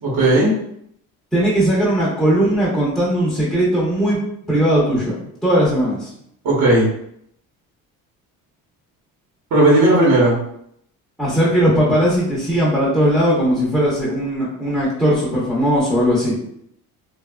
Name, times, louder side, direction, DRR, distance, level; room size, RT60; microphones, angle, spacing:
voice 1, 0.0-0.5 6.4-6.9 9.5-10.3, right 1 dB, 60° right, -6 dB, 1.1 m, -14 dB
voice 2, 1.3-4.2 4.5-5.1 5.4-6.1 11.2-16.3, equal, ahead, -8 dB, 0.7 m, -18 dB
2.6 x 2.4 x 2.2 m, 0.72 s
cardioid pair, 105°, 35 cm